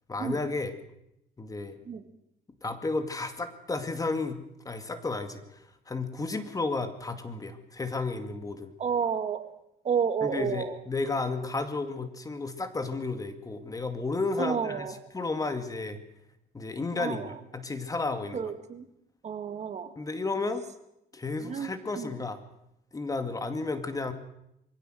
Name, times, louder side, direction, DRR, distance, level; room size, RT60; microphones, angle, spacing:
voice 1, 0.1-0.7 1.4-1.8 2.6-8.7 10.2-16.0 16.5-18.5 20.0-20.6 21.1-22.4 22.9-24.1, left 3 dB, 20° left, 9 dB, 2.2 m, -32 dB
voice 2, 8.8-9.4 9.8-10.8 14.4-15.0 17.0-17.4 18.3-18.9 19.2-19.9 21.4-22.1, right 7 dB, 40° right, 9 dB, 2.1 m, -31 dB
23.0 x 16.5 x 7.8 m, 0.80 s
cardioid pair, 110°, 17 cm